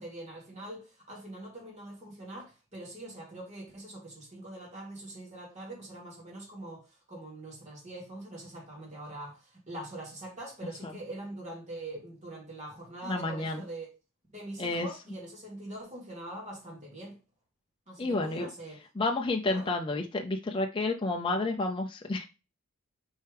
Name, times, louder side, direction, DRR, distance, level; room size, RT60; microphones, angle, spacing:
voice 1, 0.0-13.9 14.3-17.2 17.9-18.8 19.5-19.7, right 1 dB, 35° right, 2.8 m, -43 dB
voice 2, 13.0-13.6 14.6-14.9 18.0-18.5 19.0-22.3, left 2 dB, 25° left, 0.5 m, -30 dB
6.3 x 4.6 x 3.3 m
head